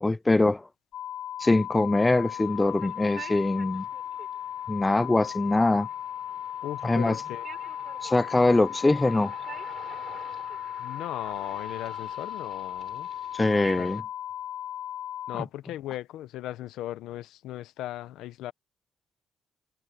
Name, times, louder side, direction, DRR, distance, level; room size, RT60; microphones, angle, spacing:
voice 1, 0.0-0.7 1.4-3.8 4.7-5.9 6.8-7.2 8.0-9.3 13.3-14.0 15.3-15.5, left 2 dB, 15° left, 0.3 m, -23 dB
sound 1, 0.9-15.4, left 11 dB, 70° left, 1.9 m, -37 dB
sound 2, 2.3-14.0, right 7 dB, 55° right, 4.6 m, -48 dB
voice 2, 6.6-7.4 10.8-13.1 13.5-13.9 15.3-18.5, left 14 dB, 90° left, 0.8 m, -37 dB
cardioid pair, 90°, 0 cm